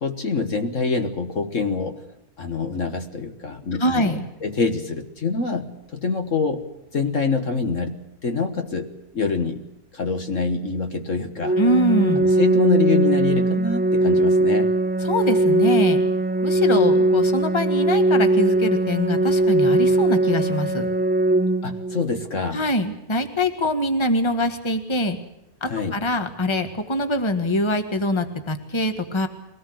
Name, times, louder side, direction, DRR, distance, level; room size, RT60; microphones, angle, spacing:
voice 1, 0.0-2.0 2.4-9.6 9.9-11.6 12.2-14.7 21.6-22.6 25.7-26.0, left 4 dB, 55° left, 6 dB, 1.8 m, -25 dB
voice 2, 3.8-4.2 11.6-12.2 15.0-16.0 16.4-20.9 22.5-25.2 25.6-29.3, left 1 dB, 20° left, 7 dB, 1.7 m, -23 dB
Organ, 11.4-22.4, right 2 dB, 10° right, 0.6 m, -20 dB
22.5 x 18.5 x 7.8 m, 0.87 s
omnidirectional pair, 1.6 m